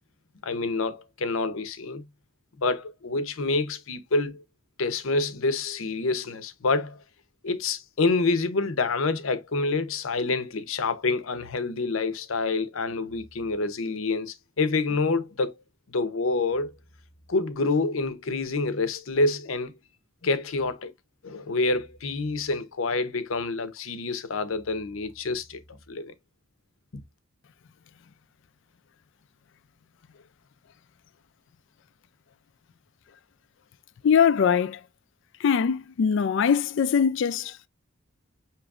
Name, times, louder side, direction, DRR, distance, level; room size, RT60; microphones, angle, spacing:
voice 1, 0.4-2.0 2.6-4.4 4.8-7.0 7.4-15.5 15.9-16.7 17.3-19.8 20.2-20.9 21.2-26.1 26.9-27.0, left 3 dB, 90° left, 0.7 m, -27 dB
voice 2, 34.0-34.8 35.4-37.7, left 7 dB, 65° left, 0.4 m, -22 dB
6.0 x 3.0 x 2.4 m
head